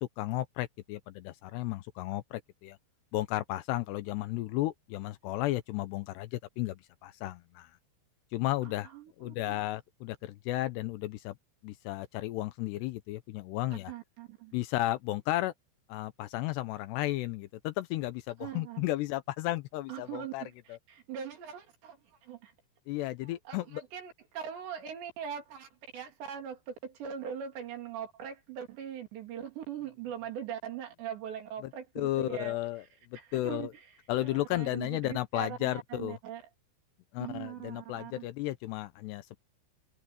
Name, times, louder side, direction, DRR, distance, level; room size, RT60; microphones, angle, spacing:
voice 1, 0.2-2.8 3.1-7.7 8.3-8.9 9.2-11.4 11.6-13.9 14.5-15.5 15.9-20.4 20.7-20.8 22.9-23.8 32.0-32.8 33.1-33.7 34.1-36.2 37.1-39.4, left 16 dB, 85° left, 2.4 m, -33 dB
voice 2, 8.9-9.6 13.9-14.5 18.4-18.9 19.9-22.0 22.2-22.5 23.2-32.6 33.1-33.8 34.2-36.4 37.2-38.3, right 9 dB, 65° right, 5.1 m, -41 dB
omnidirectional pair, 5.7 m